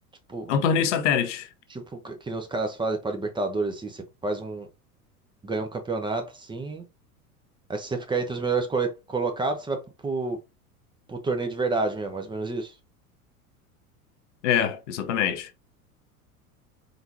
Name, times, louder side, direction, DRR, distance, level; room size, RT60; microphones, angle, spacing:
voice 1, 0.5-1.5 14.4-15.5, left 8 dB, 50° left, 0.8 m, -24 dB
voice 2, 1.7-4.7 5.4-6.8 7.7-10.4 11.1-12.7, right 3 dB, 10° right, 0.7 m, -29 dB
4.5 x 3.9 x 2.6 m
figure-of-eight pair, 80°, 45 cm